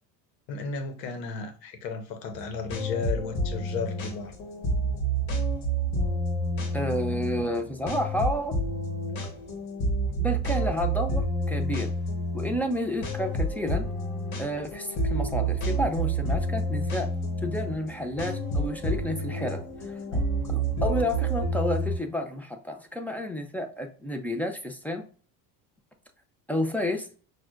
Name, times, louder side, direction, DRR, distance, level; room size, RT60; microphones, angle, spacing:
voice 1, 0.5-4.3, left 4 dB, 85° left, 1.1 m, -34 dB
sound 1, 2.3-22.0, right 1 dB, 50° left, 1.5 m, -29 dB
voice 2, 6.7-8.6 10.1-11.9 12.3-13.9 14.4-17.1 17.4-25.0 26.5-27.1, left 1 dB, 5° left, 0.6 m, -31 dB
5.9 x 2.4 x 2.5 m
supercardioid pair, 95°, 48 cm